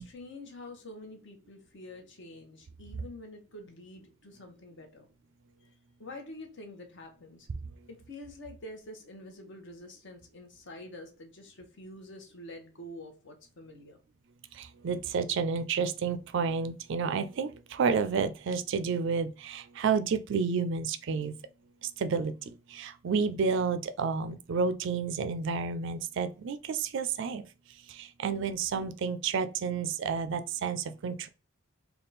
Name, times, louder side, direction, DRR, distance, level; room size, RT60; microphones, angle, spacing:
voice 1, 0.0-5.0 5.6-5.7 6.0-7.5 7.9-14.0, left 1 dB, 60° left, 0.9 m, -47 dB
voice 2, 14.6-21.3 22.0-22.3 22.7-27.4 27.9-31.3, right 5 dB, 60° right, 0.4 m, -30 dB
3.5 x 2.3 x 3.9 m
head